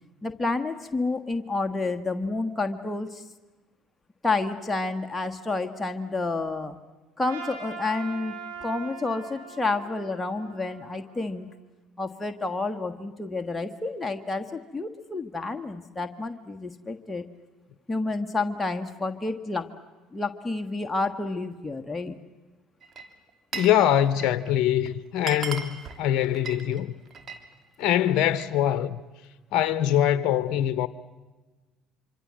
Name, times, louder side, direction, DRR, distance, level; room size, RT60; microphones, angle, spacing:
voice 1, 0.2-3.2 4.2-6.8 7.2-11.5 12.0-17.2 17.9-19.7 20.1-22.2, left 3 dB, 15° left, 1.5 m, -30 dB
Trumpet, 7.2-11.5, right 5 dB, 85° right, 6.6 m, -42 dB
Glass, 22.8-23.8 24.1-24.5 24.9-25.0 25.2-27.4 27.8-28.6, right 5 dB, 45° right, 2.8 m, -37 dB
voice 2, 23.5-26.9 27.8-29.0 29.5-30.9, left 11 dB, 60° left, 0.8 m, -23 dB
25.5 x 25.5 x 7.6 m
hypercardioid pair, 70°, 0 cm